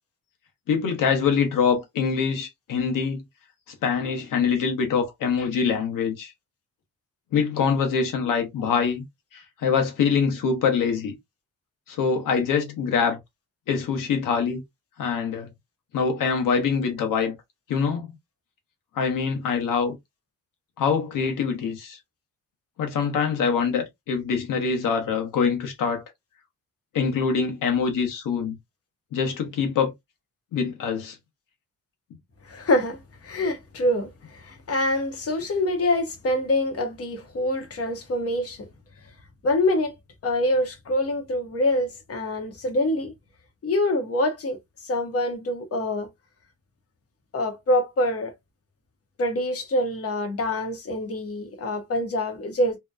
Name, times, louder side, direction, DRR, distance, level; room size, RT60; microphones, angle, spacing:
voice 1, 0.7-3.2 3.8-6.3 7.3-9.0 9.3-11.1 11.9-13.2 13.7-14.6 15.0-15.5 15.9-17.3 17.7-18.1 18.9-19.9 20.8-22.0 22.8-26.0 26.9-28.6 29.1-29.9 30.5-31.2, left 6 dB, 80° left, 1.0 m, -24 dB
voice 2, 32.4-38.7 39.4-39.9 40.2-43.1 43.6-44.6 44.8-46.1 47.3-48.3 49.2-52.8, left 1 dB, 45° left, 0.9 m, -25 dB
2.8 x 2.2 x 2.2 m
cardioid pair, 130°, 32 cm